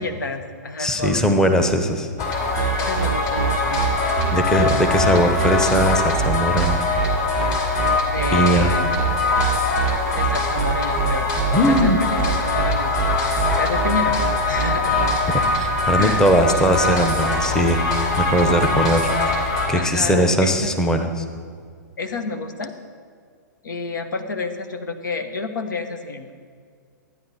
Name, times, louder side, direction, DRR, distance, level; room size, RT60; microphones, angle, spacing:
voice 1, 0.0-1.4 2.8-3.9 4.2-4.6 8.1-8.9 10.1-11.3 11.6-14.2 14.5-15.1 15.9-16.2 19.7-20.8 22.0-22.7 23.6-26.3, left 3 dB, 80° left, 7 dB, 1.1 m, -29 dB
voice 2, 0.8-2.1 4.3-6.8 8.3-8.7 11.5-12.0 15.5-17.8 18.2-21.2, equal, 5° left, 4 dB, 0.8 m, -20 dB
sound 1, 2.2-19.7, left 3 dB, 35° left, 2.6 m, -22 dB
sound 2, 2.6-15.2, right 11 dB, 50° right, 0.4 m, -25 dB
13.0 x 9.8 x 4.1 m, 2.1 s
hypercardioid pair, 125°, 10 cm